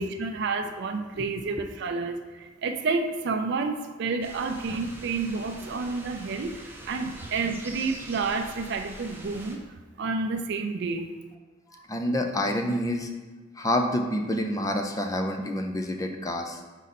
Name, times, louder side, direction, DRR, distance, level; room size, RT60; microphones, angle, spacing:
voice 1, 0.0-9.6 10.0-11.1, right 4 dB, 60° right, 5 dB, 0.4 m, -30 dB
sound 1, 4.2-9.6, right 1 dB, 10° right, 0.8 m, -44 dB
voice 2, 11.9-13.1 13.6-16.6, left 1 dB, 20° left, 4 dB, 0.5 m, -27 dB
6.3 x 4.0 x 4.1 m, 1.3 s
head